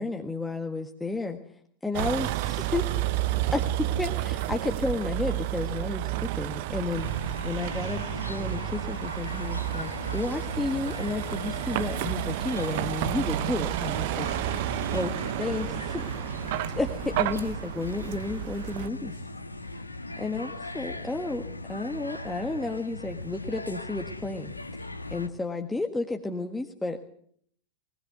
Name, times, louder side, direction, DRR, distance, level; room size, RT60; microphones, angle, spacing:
voice 1, 0.0-1.4 1.8-2.8 3.5-7.1 7.4-16.1 16.8-19.1 20.2-21.4 21.7-24.5 24.8-27.1, left 2 dB, 5° left, 3 dB, 1.7 m, -32 dB
Vehicle, 1.9-18.9, right 14 dB, 50° right, 1.1 m, -31 dB
sound 1, 6.9-25.3, left 2 dB, 85° left, 1.7 m, -39 dB
22.0 x 20.0 x 8.1 m, 0.65 s
figure-of-eight pair, 90°, 0 cm